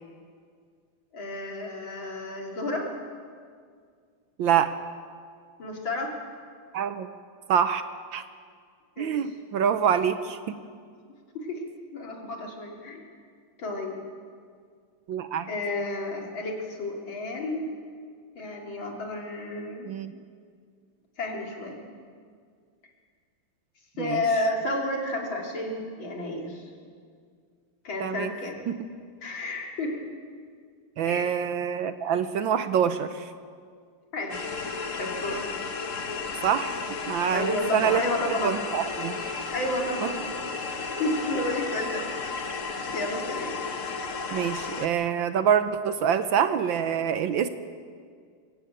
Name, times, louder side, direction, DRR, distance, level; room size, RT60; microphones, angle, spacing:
voice 1, 1.1-2.9 5.6-6.2 9.0-9.2 11.3-11.6 11.9-13.0 13.6-14.0 15.5-17.7 18.4-19.9 21.2-21.8 24.0-26.7 27.8-28.6 29.2-30.0 31.0-31.3 34.1-34.4 34.9-35.5 37.3-38.6 39.5-40.2 41.0-42.0 42.9-43.5, left 2 dB, 60° left, 0 dB, 3.6 m, -31 dB
voice 2, 4.4-4.7 6.7-7.1 7.5-7.8 8.1-8.2 9.0-10.5 15.1-15.5 19.9-20.1 24.0-24.2 28.0-28.3 28.7-28.8 31.0-33.3 36.4-36.8 37.1-38.0 38.4-39.2 40.0-40.1 44.3-47.5, right 8 dB, 70° right, 10 dB, 1.4 m, -25 dB
sound 1, 34.3-44.9, left 4 dB, 45° left, 1.3 m, -33 dB
24.0 x 14.5 x 8.9 m, 2.1 s
omnidirectional pair, 2.4 m